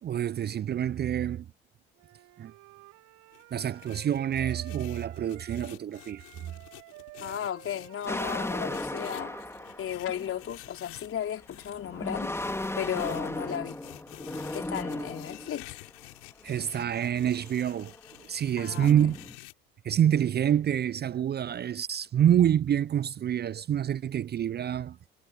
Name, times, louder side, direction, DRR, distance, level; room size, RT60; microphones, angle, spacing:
voice 1, 0.0-1.5 2.4-2.5 3.5-6.5 16.4-17.9 18.2-19.2 19.8-25.0, right 10 dB, 35° right, 0.6 m, -27 dB
Wind instrument woodwind instrument, 2.0-5.7 5.9-9.9, right 23 dB, 70° right, 5.2 m, -51 dB
sound 1, 3.3-11.7 12.5-19.5, left 32 dB, 75° left, 6.4 m, -50 dB
voice 2, 7.2-9.3 9.8-12.3 12.8-13.8 14.5-15.7 18.6-18.9, left 10 dB, 45° left, 4.0 m, -35 dB
sound 2, 8.1-10.7 11.5-15.6 16.4-16.6 17.0-18.2 18.7-19.3, left 1 dB, 10° left, 3.0 m, -36 dB
hypercardioid pair, 60°, 29 cm